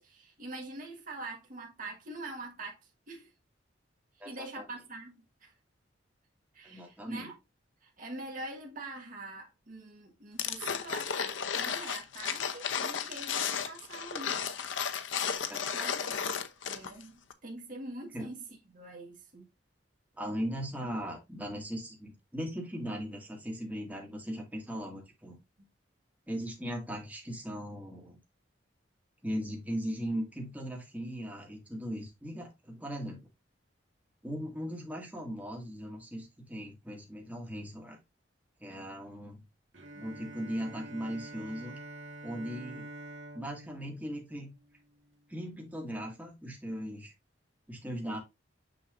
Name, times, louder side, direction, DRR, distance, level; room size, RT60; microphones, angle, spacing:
voice 1, 0.0-2.8 3.1-3.3 4.2-5.5 6.5-7.4 7.8-14.5 15.7-18.4 18.7-19.5 25.6-25.7 39.9-40.1, right 2 dB, 45° right, 1.6 m, -44 dB
voice 2, 4.2-4.6 6.6-7.3 15.5-16.2 18.1-18.3 20.2-25.4 26.3-28.2 29.2-33.2 34.2-38.0 38.6-39.4 40.0-41.8 42.2-42.9 43.3-44.5 45.3-47.1 47.7-48.2, equal, 10° right, 2.1 m, -38 dB
sound 1, 10.4-17.0 17.3-17.4, left 7 dB, 85° left, 0.8 m, -34 dB
Bowed string instrument, 39.7-45.2, right 1 dB, 85° right, 1.6 m, -47 dB
6.6 x 6.1 x 2.6 m
head